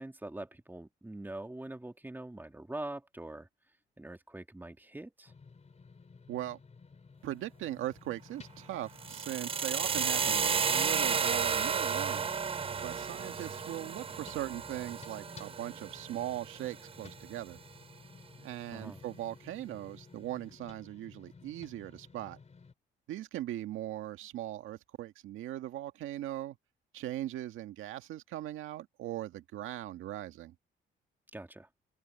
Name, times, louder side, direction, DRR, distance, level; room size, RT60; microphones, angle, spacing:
voice 1, 0.0-3.5 4.0-5.3 18.7-19.0 31.3-31.7, right 1 dB, 10° right, 2.5 m, -43 dB
sound 1, 5.3-22.7, left 4 dB, 35° left, 4.2 m, -55 dB
voice 2, 6.3-6.6 7.2-12.3 12.8-17.6 18.4-22.4 23.1-26.6 26.9-30.5, right 13 dB, 85° right, 1.8 m, -39 dB
sound 2, 9.0-17.0, right 6 dB, 30° right, 0.5 m, -33 dB
open air
cardioid pair, 90°, 20 cm